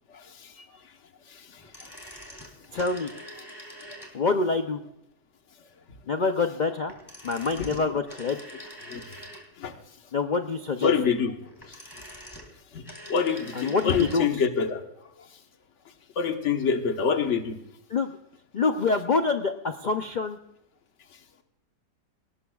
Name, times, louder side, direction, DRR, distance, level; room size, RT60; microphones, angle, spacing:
voice 1, 0.1-0.7 1.3-1.9 2.7-2.8 3.9-4.0 7.5-7.7 8.9-9.2 9.6-9.8 10.8-11.3 11.7-11.8 12.7-12.8 13.1-14.8 15.2-15.3 16.2-17.6, left 6 dB, 50° left, 5 dB, 1.5 m, -27 dB
sound 1, 1.6-4.4 6.8-9.8 11.4-14.3 14.5-14.6, equal, 15° left, 2.5 m, -45 dB
voice 2, 2.7-3.1 4.1-4.8 6.1-6.9 7.2-8.4 10.1-10.9 13.5-14.3 17.9-18.1 18.5-20.4, left 4 dB, 85° left, 6 dB, 0.4 m, -26 dB
19.5 x 18.5 x 2.4 m, 0.80 s
omnidirectional pair, 1.8 m